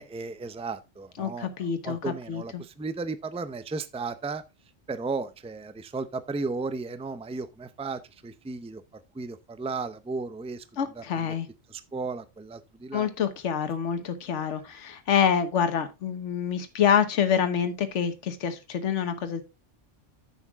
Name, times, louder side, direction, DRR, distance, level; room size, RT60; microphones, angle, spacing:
voice 1, 0.0-4.4 4.9-8.8 9.1-10.6 10.9-11.3 11.7-13.1 14.4-14.5, right 4 dB, 10° right, 0.4 m, -35 dB
voice 2, 1.2-2.0 2.3-2.6 10.8-11.5 12.9-19.4, left 8 dB, 70° left, 1.4 m, -26 dB
9.9 x 7.0 x 3.5 m
omnidirectional pair, 1.3 m